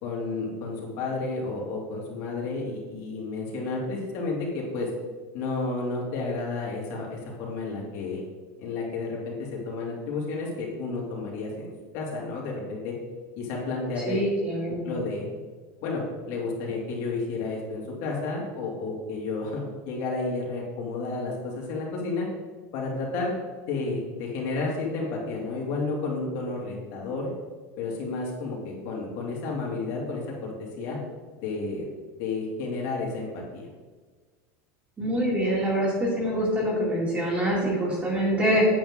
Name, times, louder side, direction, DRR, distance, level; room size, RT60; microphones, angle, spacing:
voice 1, 0.0-4.9 5.3-8.2 8.6-12.9 13.4-14.3 14.8-15.3 15.8-22.3 22.7-23.3 23.7-27.3 27.8-31.0 31.4-31.9 32.2-33.7, left 3 dB, 55° left, -3 dB, 2.6 m, -31 dB
voice 2, 14.0-15.0 35.0-38.7, equal, 15° right, -4 dB, 2.2 m, -25 dB
8.9 x 7.9 x 3.7 m, 1.4 s
supercardioid pair, 165°, 8 cm